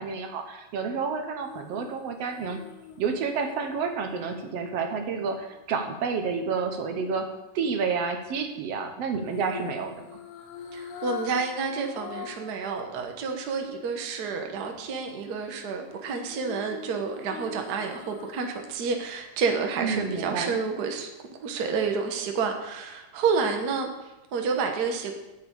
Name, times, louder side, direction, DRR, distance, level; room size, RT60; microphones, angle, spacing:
voice 1, 0.0-2.6 3.0-7.3 7.5-10.1 19.8-20.6, right 5 dB, 65° right, 5 dB, 1.7 m, -30 dB
sound 1, 1.4-5.6 9.2-12.6 13.0-13.1 15.9-18.8 19.1-19.3, left 7 dB, 90° left, 2.8 m, -43 dB
voice 2, 10.7-21.1 21.4-25.1, right 5 dB, 85° right, 3 dB, 0.8 m, -29 dB
8.7 x 6.9 x 8.1 m, 1.0 s
omnidirectional pair, 3.7 m